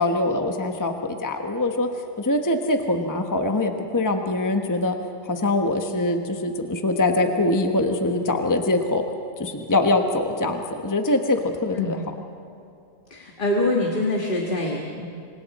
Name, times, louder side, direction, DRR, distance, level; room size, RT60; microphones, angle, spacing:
voice 1, 0.0-1.9 2.2-5.0 5.3-9.0 9.4-12.0, left 2 dB, 15° left, 4 dB, 1.0 m, -23 dB
voice 2, 13.1-15.1, left 2 dB, 40° left, 0 dB, 1.8 m, -24 dB
27.5 x 25.0 x 4.2 m, 2.6 s
omnidirectional pair, 1.4 m